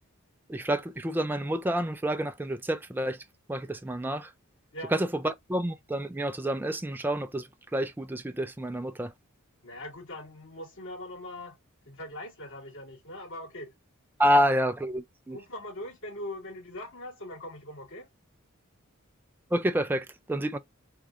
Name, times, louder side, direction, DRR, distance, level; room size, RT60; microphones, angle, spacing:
voice 1, 0.5-3.2 3.5-4.3 4.9-9.1 14.2-15.4 19.5-20.6, equal, 10° right, 0.3 m, -28 dB
voice 2, 9.6-11.6 11.9-13.7 14.2-14.5 15.3-18.1, left 1 dB, 65° left, 2.1 m, -41 dB
3.6 x 2.2 x 3.5 m
head